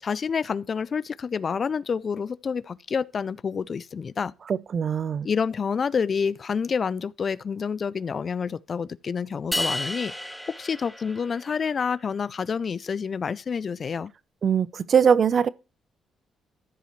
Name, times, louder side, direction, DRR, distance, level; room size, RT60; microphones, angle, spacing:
voice 1, 0.0-4.3 5.2-10.1 10.6-14.1, left 6 dB, 45° left, 0.3 m, -28 dB
voice 2, 4.5-5.3 14.4-15.5, right 7 dB, 50° right, 0.5 m, -21 dB
sound 1, 9.5-11.8, left 1 dB, ahead, 1.0 m, -32 dB
14.5 x 5.6 x 3.0 m
cardioid pair, 90°, 0 cm